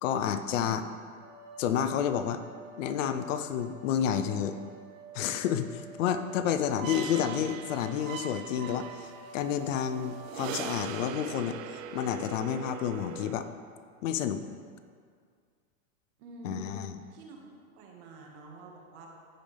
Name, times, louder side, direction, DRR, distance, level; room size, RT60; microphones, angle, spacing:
voice 1, 0.0-0.8 1.6-2.4 2.8-4.6 5.1-11.6 11.9-13.5 14.0-14.4 16.4-16.9, left 9 dB, 60° left, 10 dB, 0.7 m, -30 dB
voice 2, 0.5-0.9 16.2-16.7 17.1-17.4 17.8-19.1, right 5 dB, 50° right, 0 dB, 1.9 m, -47 dB
sound 1, 1.2-11.0, right 4 dB, 25° right, 1.8 m, -49 dB
sound 2, 6.1-13.3, right 8 dB, 70° right, 0.7 m, -41 dB
14.5 x 5.2 x 3.4 m, 2.1 s
hypercardioid pair, 120°, 42 cm